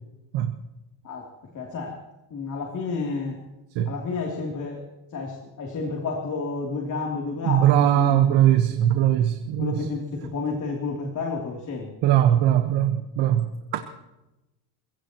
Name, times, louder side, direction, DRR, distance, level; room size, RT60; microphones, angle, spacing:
voice 1, 1.5-2.0 2.3-3.4 3.9-4.9 5.1-8.2 9.6-11.9, left 4 dB, 45° left, 0 dB, 3.2 m, -30 dB
voice 2, 7.4-9.9 12.0-13.8, right 11 dB, 80° right, 7 dB, 1.4 m, -20 dB
28.5 x 16.5 x 3.1 m, 0.98 s
cardioid pair, 110°, 42 cm